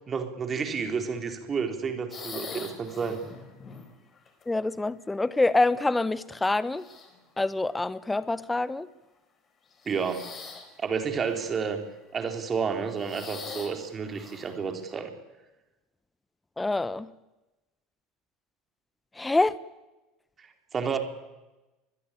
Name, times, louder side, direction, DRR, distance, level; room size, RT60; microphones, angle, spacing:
voice 1, 0.1-3.2 9.9-10.3 10.8-11.8 12.1-15.1 20.4-21.0, right 6 dB, 30° right, 6 dB, 4.0 m, -30 dB
sound 1, 2.1-4.4 5.3-6.0 6.6-7.3 8.2-8.4 9.7-10.8 11.2-11.8 12.6-14.7, left 5 dB, 30° left, 4.8 m, -44 dB
voice 2, 4.5-6.8 7.4-8.9 16.6-17.1 19.2-19.5, left 2 dB, 10° left, 18 dB, 1.2 m, -26 dB
23.5 x 21.0 x 8.7 m, 1.1 s
figure-of-eight pair, 70°, 0 cm